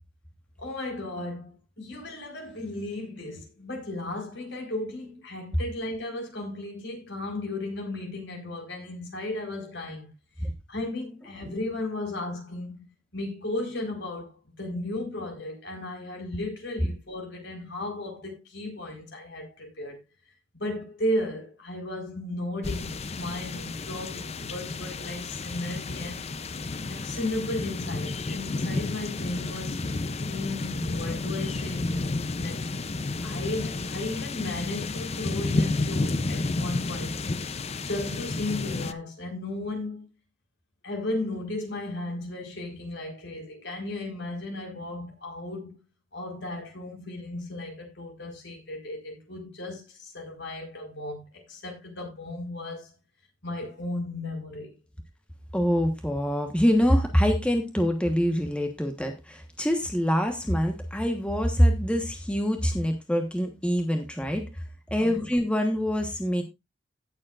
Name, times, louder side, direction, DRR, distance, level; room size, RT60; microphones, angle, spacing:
voice 1, 0.6-1.5 1.8-10.1 10.7-12.9 13.1-20.0 20.5-26.2 26.9-29.8 30.2-31.9 32.4-32.7 33.2-37.2 37.8-40.1 40.8-45.8 46.1-52.9 53.4-54.7 65.0-65.2, left 2 dB, 65° left, 4.5 m, -35 dB
sound 1, 22.6-38.9, left 3 dB, 35° left, 0.6 m, -31 dB
voice 2, 55.5-64.4 64.9-66.4, equal, 5° left, 1.2 m, -25 dB
16.5 x 7.4 x 2.5 m
head